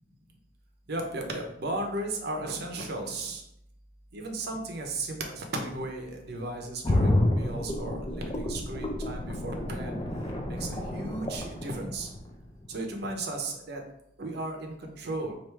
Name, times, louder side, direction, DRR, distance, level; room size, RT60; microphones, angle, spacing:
voice 1, 0.9-3.4 4.1-9.9 10.5-12.1 12.7-13.8 14.2-15.3, right 2 dB, 55° right, 3 dB, 0.7 m, -35 dB
sound 1, 6.8-12.7 13.0-13.1, left 1 dB, 25° left, 0.4 m, -30 dB
4.6 x 2.5 x 3.2 m, 0.76 s
head